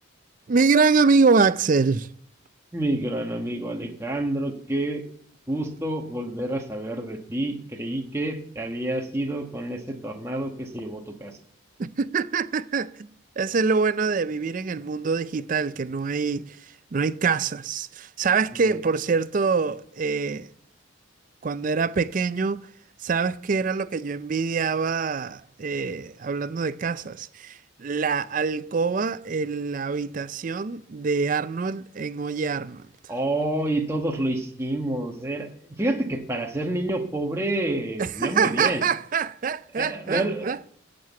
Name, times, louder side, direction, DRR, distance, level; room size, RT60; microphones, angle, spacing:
voice 1, 0.5-2.1 11.8-13.1 13.4-16.6 16.9-20.5 21.4-22.7 23.0-32.8 38.0-40.7, right 5 dB, 40° right, 0.4 m, -25 dB
voice 2, 2.7-5.0 5.5-11.3 18.7-18.8 33.1-35.5 35.8-38.8 39.8-40.5, right 1 dB, 15° right, 1.2 m, -28 dB
7.6 x 7.5 x 8.1 m
head